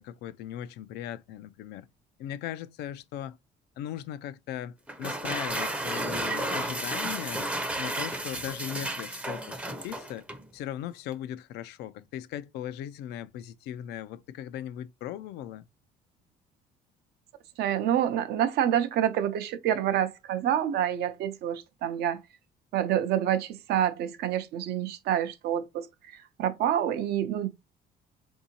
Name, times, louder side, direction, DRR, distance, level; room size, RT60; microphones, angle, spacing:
voice 1, 0.0-1.9 2.2-3.4 3.8-7.5 7.8-10.2 10.5-15.6, left 11 dB, 80° left, 0.4 m, -38 dB
sound 1, 4.9-10.5, right 1 dB, 10° right, 0.5 m, -32 dB
voice 2, 17.6-22.2 22.7-27.5, right 10 dB, 75° right, 0.6 m, -27 dB
3.7 x 2.7 x 2.7 m
cardioid pair, 110°, 17 cm